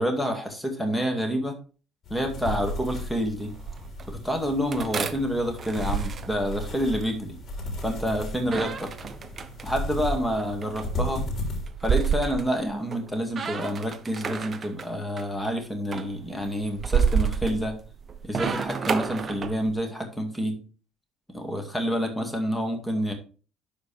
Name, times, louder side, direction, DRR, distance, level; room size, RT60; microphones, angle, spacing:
voice 1, 0.0-1.6 2.1-3.5 4.1-7.4 7.8-8.9 9.6-11.3 11.8-17.8 18.2-20.6 21.3-23.1, equal, 5° left, 4 dB, 2.1 m, -28 dB
sound 1, 2.0-11.7, left 1 dB, 50° left, 3.2 m, -35 dB
sound 2, 3.3-4.1 4.7-7.0 8.4-9.7 10.4-13.1 13.3-14.9 15.2-15.5 15.9-19.8, right 6 dB, 40° right, 0.8 m, -29 dB
11.0 x 4.4 x 3.4 m, 0.37 s
supercardioid pair, 80°, 0 cm